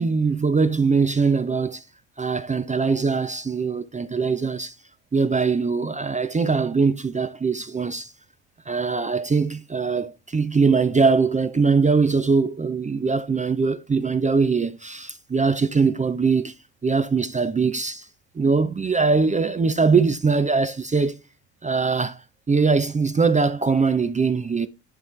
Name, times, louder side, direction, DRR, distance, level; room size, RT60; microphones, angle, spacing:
voice 1, 0.0-1.8 2.2-4.7 5.1-8.1 8.7-16.5 16.8-18.1 18.3-21.2 21.6-24.7, right 4 dB, 15° right, 0.5 m, -22 dB
11.0 x 4.4 x 3.2 m
hypercardioid pair, 60°, 46 cm